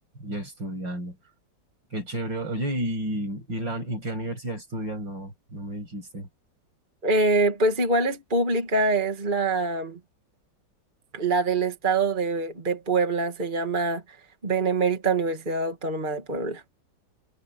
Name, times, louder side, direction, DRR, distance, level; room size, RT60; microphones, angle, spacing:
voice 1, 0.2-1.2 1.9-6.3, right 1 dB, 70° right, 8.3 m, -32 dB
voice 2, 7.0-10.0 11.1-14.0 14.4-16.6, right 3 dB, 25° right, 2.2 m, -24 dB
omnidirectional pair, 2.1 m